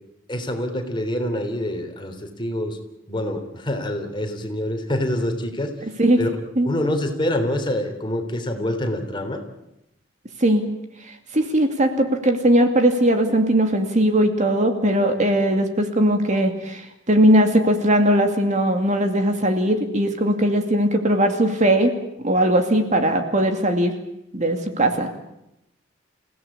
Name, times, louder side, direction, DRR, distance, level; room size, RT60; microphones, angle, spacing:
voice 1, 0.3-2.8 3.1-5.7 6.2-6.3 6.6-9.4, left 1 dB, 25° left, 5 dB, 3.4 m, -26 dB
voice 2, 11.3-21.9 22.2-23.9 24.3-25.1, right 1 dB, 40° right, 5 dB, 2.5 m, -19 dB
28.5 x 16.5 x 8.6 m, 0.86 s
head